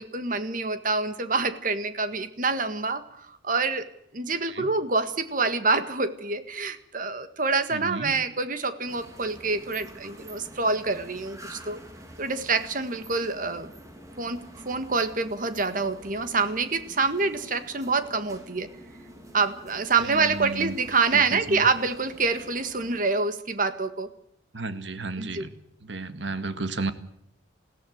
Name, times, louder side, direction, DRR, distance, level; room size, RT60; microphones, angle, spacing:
voice 1, 0.0-11.8 12.2-13.7 14.2-18.7 19.3-24.1 25.2-25.4, right 4 dB, 45° right, 11 dB, 1.7 m, -26 dB
voice 2, 7.7-8.2 20.0-20.8 21.1-21.7 24.5-25.5 25.8-26.9, right 3 dB, 75° right, 11 dB, 1.9 m, -33 dB
sound 1, 8.9-23.0, equal, 15° right, 3.2 m, -47 dB
21.5 x 16.5 x 7.9 m, 0.74 s
head